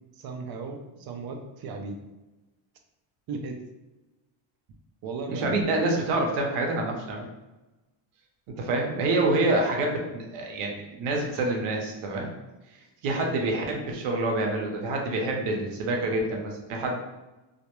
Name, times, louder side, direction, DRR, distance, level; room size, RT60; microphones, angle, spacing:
voice 1, 0.2-2.0 3.3-3.6 5.0-5.6, right 4 dB, 50° right, 4 dB, 0.5 m, -36 dB
voice 2, 5.3-7.3 8.5-12.3 13.0-17.0, right 2 dB, 80° right, 1 dB, 0.8 m, -27 dB
2.3 x 2.1 x 2.9 m, 1.1 s
cardioid pair, 120°, 50 cm